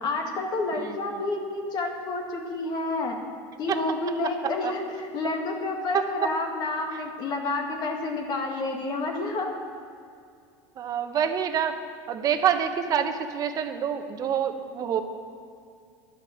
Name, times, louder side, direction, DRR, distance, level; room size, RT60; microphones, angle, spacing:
voice 1, 0.0-3.2 3.6-9.5, left 2 dB, 45° left, 2 dB, 1.9 m, -29 dB
voice 2, 5.9-6.3 6.9-7.0 10.8-11.7 12.1-15.0, right 8 dB, 35° right, 7 dB, 1.0 m, -26 dB
11.0 x 9.9 x 7.3 m, 2.3 s
supercardioid pair, 125°, 10 cm